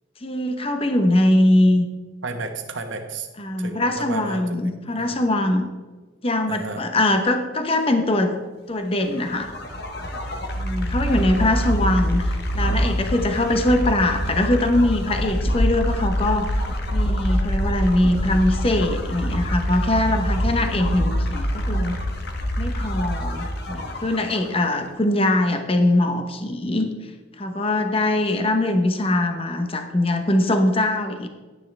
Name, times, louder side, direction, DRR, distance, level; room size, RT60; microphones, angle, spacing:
voice 1, 0.2-1.9 3.4-5.7 6.2-8.4 8.7-9.5 10.6-16.6 16.9-22.0 22.6-26.9 27.4-31.3, left 1 dB, 30° left, 6 dB, 0.8 m, -22 dB
voice 2, 2.2-3.3 3.6-4.4 5.0-5.3 6.5-6.8, right 3 dB, 60° right, 5 dB, 1.2 m, -32 dB
sound 1, 9.0-24.7, equal, 50° left, 1.2 m, -25 dB
11.0 x 10.5 x 3.3 m, 1.3 s
head